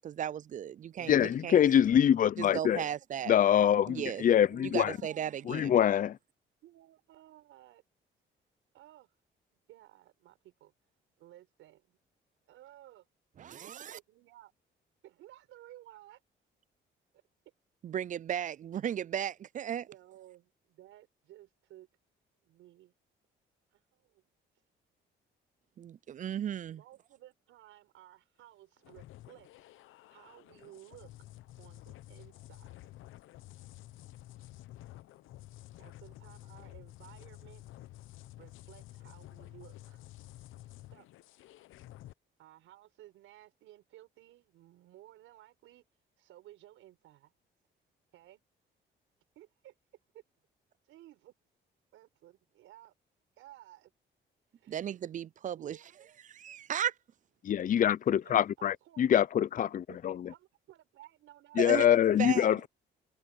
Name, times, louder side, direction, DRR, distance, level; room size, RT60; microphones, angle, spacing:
voice 1, 0.0-1.6 2.4-3.3 3.9-4.2 4.6-5.7 13.4-14.0 17.8-19.9 25.8-26.8 54.7-55.8 56.2-56.9 61.6-61.9 62.2-62.5, right 9 dB, 40° right, 0.4 m, -35 dB
voice 2, 1.1-2.8 3.3-5.0 5.5-6.2 57.4-60.3 61.6-62.7, left 10 dB, 45° left, 0.5 m, -25 dB
voice 3, 4.1-5.2 6.6-7.8 8.7-9.1 9.7-10.7 11.2-12.0 12.5-13.1 13.6-14.5 15.0-16.2 19.9-21.9 22.4-22.9 23.7-24.2 26.7-29.5 30.1-31.1 31.6-32.7 34.7-34.9 35.8-37.8 38.4-40.1 40.6-41.1 42.4-45.8 46.2-47.3 48.1-48.4 49.4-49.7 50.1-50.2 50.8-51.3 51.9-52.9 53.4-53.9 54.6-54.8 55.6-55.8 58.2-59.3 59.9-61.8, right 14 dB, 90° right, 5.5 m, -56 dB
sound 1, 28.8-42.1, left 16 dB, 90° left, 0.8 m, -51 dB
cardioid pair, 90°, 20 cm